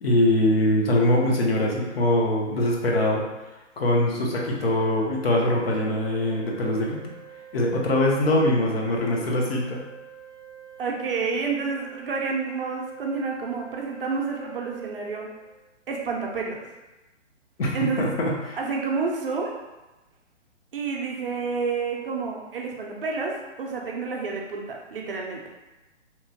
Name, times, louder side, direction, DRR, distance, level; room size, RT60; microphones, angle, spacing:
voice 1, 0.0-3.2 3.8-7.1 7.5-9.8 17.6-18.6, left 1 dB, 55° left, -1 dB, 0.6 m, -23 dB
Organ, 4.6-15.7, right 8 dB, 5° left, 0.4 m, -46 dB
voice 2, 10.8-15.3 15.9-16.6 17.7-18.1 18.6-19.6 20.7-25.4, right 4 dB, 50° right, 0 dB, 0.5 m, -29 dB
2.9 x 2.0 x 2.7 m, 1.1 s
hypercardioid pair, 160°, 36 cm